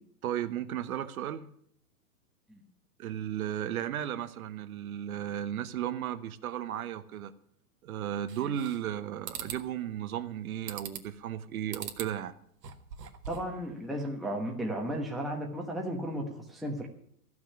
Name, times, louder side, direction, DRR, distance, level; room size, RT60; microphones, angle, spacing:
voice 1, 0.2-1.5 3.0-7.3 7.8-12.3, right 10 dB, 60° right, 11 dB, 1.0 m, -35 dB
sound 1, 8.3-8.9 9.3-9.6 10.7-11.2 11.7-12.1 12.5-13.6, right 7 dB, 75° right, 1.8 m, -41 dB
voice 2, 13.3-16.9, equal, ahead, -1 dB, 1.1 m, -34 dB
14.5 x 6.0 x 9.9 m, 0.67 s
hypercardioid pair, 150°, 48 cm